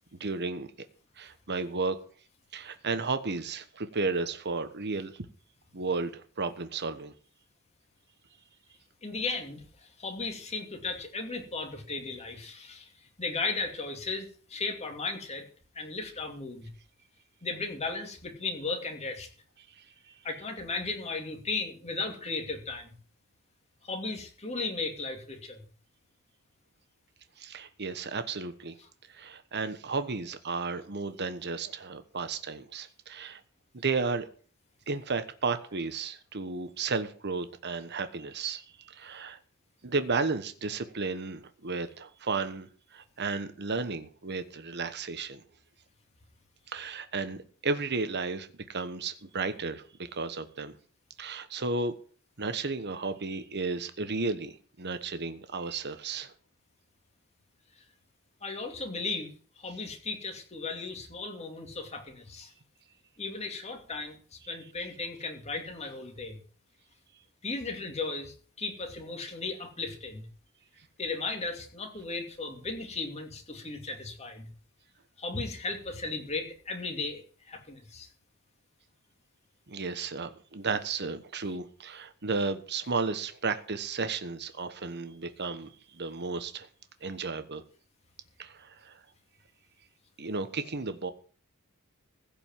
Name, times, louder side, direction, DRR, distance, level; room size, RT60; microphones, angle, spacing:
voice 1, 0.2-0.7 1.2-2.0 2.5-5.3 5.7-7.1 19.8-19.9 27.4-28.8 29.1-33.4 33.7-34.3 34.9-39.4 39.8-45.4 46.7-49.8 50.1-50.8 51.2-51.9 52.4-56.3 79.7-86.7 87.0-87.6 88.4-89.0 90.2-91.1, right 4 dB, 50° right, 10 dB, 1.2 m, -33 dB
voice 2, 9.0-15.5 15.7-16.7 17.4-19.3 20.2-23.0 23.8-25.6 58.4-62.5 63.2-66.4 67.4-70.3 71.0-74.5 75.2-78.1, left 3 dB, 30° left, 3 dB, 2.7 m, -36 dB
16.0 x 5.3 x 9.1 m, 0.42 s
head